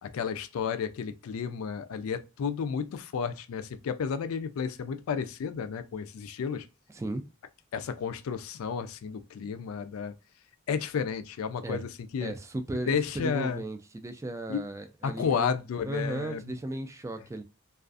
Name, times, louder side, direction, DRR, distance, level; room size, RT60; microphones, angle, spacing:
voice 1, 0.0-6.7 7.7-10.1 10.7-12.3 12.9-13.6 14.5-14.6 15.0-16.6, left 6 dB, 75° left, 0.3 m, -32 dB
voice 2, 12.2-15.5 15.8-17.4, right 2 dB, 15° right, 0.3 m, -35 dB
2.4 x 2.3 x 2.3 m
head